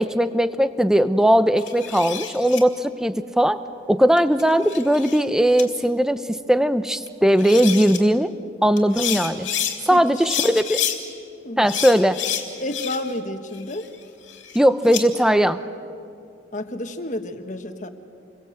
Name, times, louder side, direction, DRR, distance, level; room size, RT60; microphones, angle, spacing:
voice 1, 0.0-3.6 3.9-8.3 8.6-9.5 9.8-10.8 11.6-12.2 14.5-15.6, equal, 5° right, 11 dB, 0.7 m, -19 dB
sound 1, 1.6-2.6 4.2-5.2 5.6-5.7 7.1-7.2 7.4-8.0 8.8-9.8 10.2-11.0 11.7-13.2 13.5-15.0, left 9 dB, 85° left, 2.5 m, -29 dB
voice 2, 9.9-10.3 11.4-11.7 12.6-13.9 16.5-17.9, left 1 dB, 40° left, 7 dB, 1.4 m, -30 dB
27.5 x 23.0 x 7.9 m, 2.4 s
head